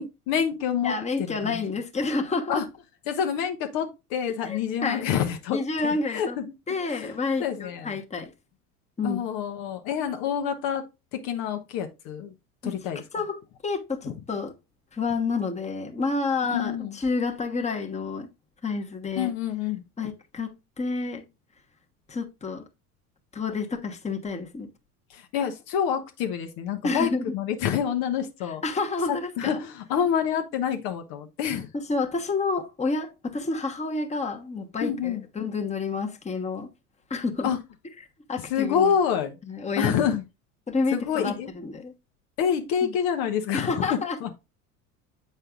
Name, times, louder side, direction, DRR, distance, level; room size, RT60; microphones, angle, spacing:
voice 1, 0.0-0.9 1.2-1.6 2.5-2.6 3.1-5.6 5.8-6.4 6.9-7.1 7.4-8.0 9.0-10.8 11.1-12.3 12.6-13.0 14.0-14.1 16.5-17.0 19.1-19.8 25.1-28.6 29.1-31.7 34.8-35.2 37.4-37.6 38.5-39.4 39.8-40.2 40.9-41.5 42.4-44.3, left 8 dB, 55° left, 1.0 m, -27 dB
voice 2, 0.8-2.6 4.4-5.1 5.5-6.4 6.7-8.3 9.0-9.2 12.6-12.7 13.1-14.5 14.9-18.3 18.6-19.3 20.0-20.5 20.8-21.2 22.1-22.6 23.3-24.7 26.8-27.3 28.6-29.6 31.7-36.7 37.1-37.5 38.3-39.0 39.5-40.1 40.7-41.9 42.8-43.0 43.5-44.3, left 4 dB, 15° left, 1.2 m, -29 dB
7.7 x 5.5 x 2.4 m
hypercardioid pair, 75°, 45 cm